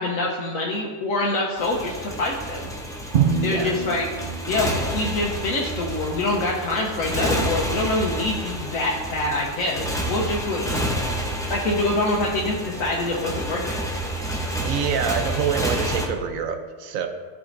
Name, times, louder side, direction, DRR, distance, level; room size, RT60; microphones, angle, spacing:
voice 1, 0.0-2.7 3.4-4.0 4.4-10.8 11.5-13.8, left 2 dB, 85° left, -3 dB, 1.2 m, -25 dB
Motorcycle, 1.6-16.1, right 1 dB, 5° left, 0.5 m, -29 dB
Drum, 3.1-5.2, right 6 dB, 60° right, 0.6 m, -25 dB
voice 2, 3.4-3.8 14.6-17.1, right 7 dB, 85° right, 6 dB, 1.1 m, -26 dB
12.5 x 5.0 x 2.5 m, 1.5 s
omnidirectional pair, 1.4 m